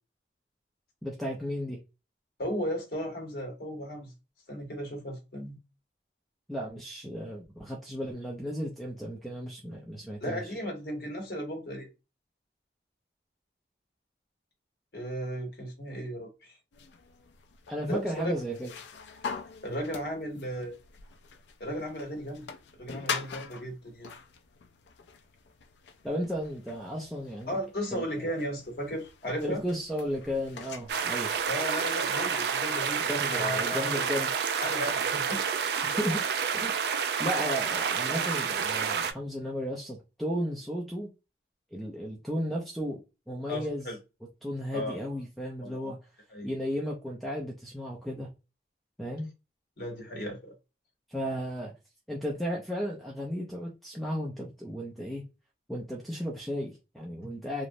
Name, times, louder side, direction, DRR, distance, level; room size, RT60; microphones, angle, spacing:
voice 1, 1.0-1.8 6.5-10.4 17.7-18.7 26.0-27.6 27.9-28.3 29.4-31.3 33.1-34.3 35.8-36.2 36.5-36.7 37.2-41.1 41.7-43.0 43.3-43.9 44.4-46.0 46.4-48.3 49.0-49.3 51.1-51.7 52.1-55.2 55.7-57.7, equal, ahead, 0.4 m, -34 dB
voice 2, 2.4-4.1 4.5-5.6 10.2-11.9 14.9-16.5 17.9-18.3 19.6-20.7 21.6-22.5 22.8-24.1 27.5-29.6 31.5-33.0 33.3-34.1 34.6-35.7 43.5-44.0 44.7-45.0 45.6-45.9 46.3-46.5 49.8-50.6 57.2-57.3, equal, 60° left, 1.0 m, -35 dB
sound 1, 16.7-31.5, left 5 dB, 80° left, 0.4 m, -44 dB
sound 2, 30.9-39.1, right 6 dB, 65° right, 0.3 m, -29 dB
3.0 x 2.0 x 2.6 m
head